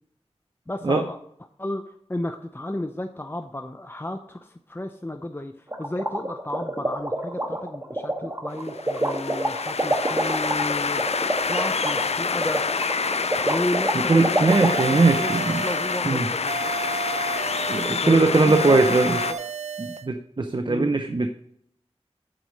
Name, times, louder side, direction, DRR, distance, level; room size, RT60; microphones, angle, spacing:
voice 1, 0.7-1.2 1.6-12.6 13.5-16.6 18.0-18.8 19.1-19.4 20.7-20.9, left 1 dB, 20° left, 6 dB, 0.6 m, -33 dB
sound 1, 5.7-14.8, right 1 dB, 25° right, 1.4 m, -26 dB
sound 2, 8.6-19.3, left 5 dB, 75° left, 0.4 m, -27 dB
voice 2, 13.9-15.6 16.0-16.3 17.0-17.1 17.7-19.2 19.8-21.3, right 3 dB, 45° right, 7 dB, 0.7 m, -20 dB
sound 3, 14.5-16.1 16.5-18.1 18.5-20.1, right 5 dB, 90° right, 0.5 m, -32 dB
9.0 x 4.7 x 6.4 m, 0.70 s
wide cardioid pair, 45°, 11 cm